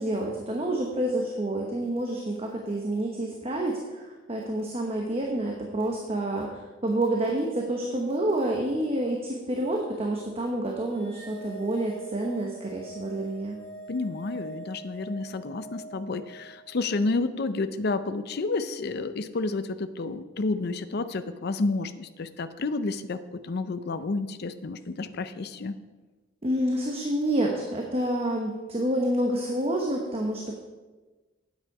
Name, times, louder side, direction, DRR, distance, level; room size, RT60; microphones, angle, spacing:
voice 1, 0.0-6.5 6.8-13.6 26.4-30.5, right 1 dB, 30° right, 0 dB, 1.0 m, -28 dB
sound 1, 10.9-17.4, right 2 dB, 10° left, 3.8 m, -44 dB
voice 2, 13.9-25.8, left 3 dB, 55° left, 11 dB, 0.5 m, -30 dB
9.1 x 8.3 x 4.8 m, 1.2 s
head